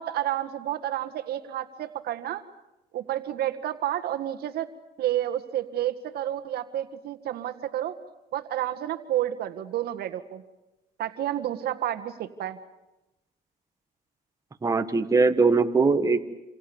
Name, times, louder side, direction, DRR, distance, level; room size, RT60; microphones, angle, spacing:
voice 1, 0.0-2.4 2.9-4.7 5.0-7.9 8.3-10.4 11.0-12.6, right 12 dB, 70° right, 8 dB, 1.8 m, -30 dB
voice 2, 14.6-16.2, right 4 dB, 20° right, 7 dB, 1.5 m, -21 dB
28.0 x 27.0 x 7.2 m, 0.95 s
cardioid pair, 110°, 17 cm